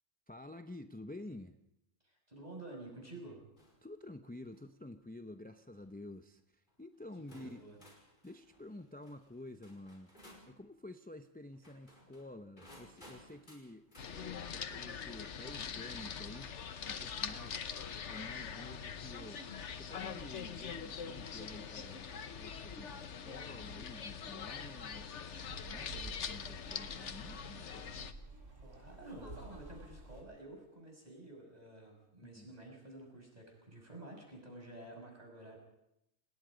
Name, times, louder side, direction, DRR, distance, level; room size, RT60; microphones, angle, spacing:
voice 1, 0.3-1.6 3.8-7.9 8.2-10.1 10.5-16.6 16.9-19.5 19.7-25.1 25.6-28.0 32.2-32.5, left 1 dB, 10° left, 7 dB, 0.5 m, -50 dB
voice 2, 2.0-3.4 7.3-7.8 28.6-35.6, right 2 dB, 30° right, 1 dB, 6.7 m, -51 dB
sound 1, 3.6-3.9 4.4-4.7 5.5-5.8 6.7-6.8 7.3-10.5 11.5-14.1 15.9-16.0 17.3-18.0, left 1 dB, 40° left, 5.4 m, -60 dB
sound 2, 14.0-28.1, left 7 dB, 65° left, 1.3 m, -43 dB
sound 3, 25.2-30.2, right 2 dB, 70° right, 4.4 m, -51 dB
29.0 x 19.5 x 5.1 m, 0.84 s
omnidirectional pair, 1.3 m